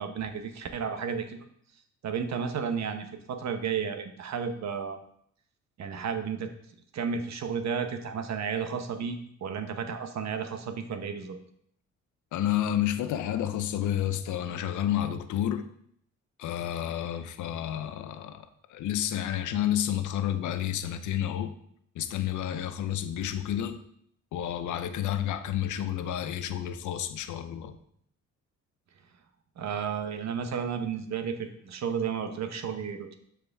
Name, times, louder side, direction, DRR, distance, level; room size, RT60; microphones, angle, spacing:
voice 1, 0.0-1.5 2.0-5.0 5.8-6.5 6.9-11.4 29.6-33.1, right 6 dB, 60° right, 7 dB, 1.1 m, -32 dB
voice 2, 12.3-15.6 16.4-18.4 18.7-21.5 22.0-23.8 24.3-27.8, left 11 dB, 75° left, 10 dB, 0.7 m, -30 dB
12.5 x 4.9 x 3.5 m, 0.68 s
cardioid pair, 90°, 30 cm